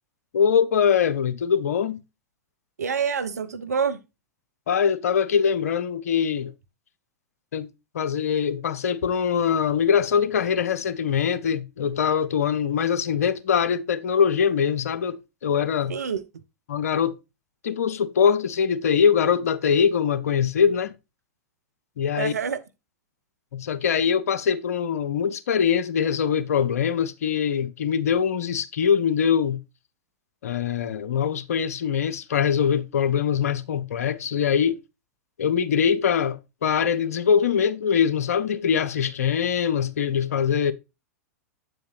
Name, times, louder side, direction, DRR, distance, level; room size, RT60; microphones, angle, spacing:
voice 1, 0.3-2.0 4.7-6.5 7.5-7.7 7.9-15.9 16.7-17.2 17.6-20.9 22.0-22.3 23.5-29.6 30.4-34.8 35.4-40.7, left 7 dB, 65° left, 0.6 m, -23 dB
voice 2, 2.8-4.0 15.9-16.2 22.2-22.6, right 6 dB, 75° right, 0.8 m, -26 dB
7.9 x 7.6 x 2.5 m
figure-of-eight pair, 95°, 9 cm